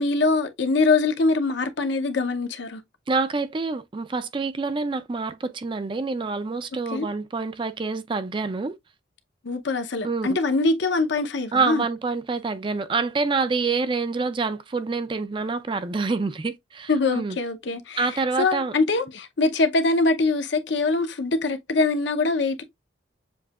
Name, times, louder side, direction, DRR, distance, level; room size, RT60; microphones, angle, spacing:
voice 1, 0.0-2.8 6.9-7.1 9.4-11.8 16.9-18.1 18.4-22.6, left 3 dB, 65° left, 0.7 m, -23 dB
voice 2, 3.1-8.8 10.0-10.3 11.5-17.4 18.0-18.7, right 4 dB, 25° right, 0.4 m, -27 dB
7.0 x 2.7 x 2.3 m
head